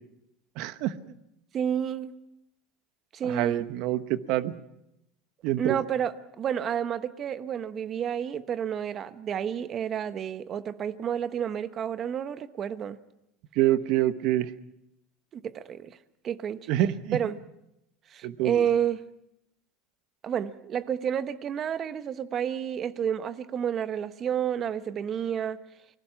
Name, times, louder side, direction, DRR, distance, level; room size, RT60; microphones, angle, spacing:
voice 1, 0.6-0.9 3.2-4.5 5.4-5.8 13.6-14.5 16.7-17.2 18.2-18.6, right 14 dB, 65° right, 14 dB, 1.1 m, -26 dB
voice 2, 1.5-2.1 3.1-3.7 5.6-13.0 15.3-16.0 16.2-16.7 17.1-17.4 18.1-19.0 20.2-25.6, right 8 dB, 35° right, 13 dB, 1.2 m, -30 dB
29.0 x 20.0 x 5.9 m, 0.82 s
supercardioid pair, 120°, 0 cm